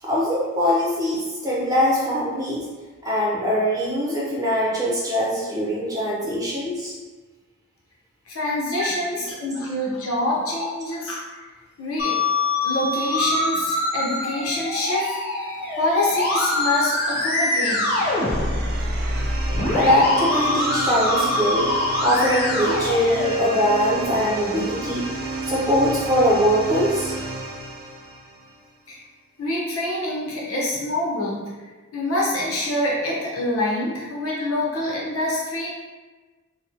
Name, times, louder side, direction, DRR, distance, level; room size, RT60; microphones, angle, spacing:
voice 1, 0.0-2.7 3.0-6.9 19.7-21.7 22.0-25.1 25.4-27.1, equal, 15° right, -6 dB, 0.8 m, -22 dB
voice 2, 8.3-11.2 11.8-12.1 12.6-15.2 15.8-17.9 28.9-29.0 29.4-31.4 31.9-35.9, left 1 dB, 85° left, -4 dB, 1.0 m, -26 dB
Musical instrument, 12.0-23.9, left 2 dB, 45° left, 0.6 m, -24 dB
sound 1, 14.8-28.7, right 2 dB, 50° right, 0.4 m, -33 dB
4.0 x 2.3 x 2.9 m, 1.3 s
head